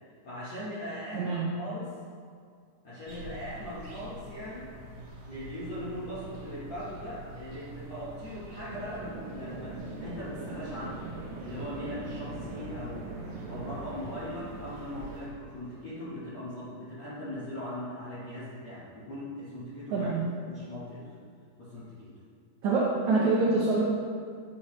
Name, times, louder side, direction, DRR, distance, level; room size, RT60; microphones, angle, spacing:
voice 1, 0.2-1.9 2.8-4.7 5.2-11.0 11.4-20.1 20.4-21.2 21.6-22.1, left 1 dB, 65° left, -10 dB, 1.6 m, -40 dB
voice 2, 1.1-1.4 19.9-20.2 22.6-23.8, right 3 dB, 90° right, -5 dB, 1.6 m, -25 dB
sound 1, 3.1-15.3, right 1 dB, 50° right, 1.5 m, -46 dB
sound 2, 8.7-16.2, right 3 dB, 75° right, 3.0 m, -42 dB
10.5 x 7.3 x 3.2 m, 2.1 s
omnidirectional pair, 5.0 m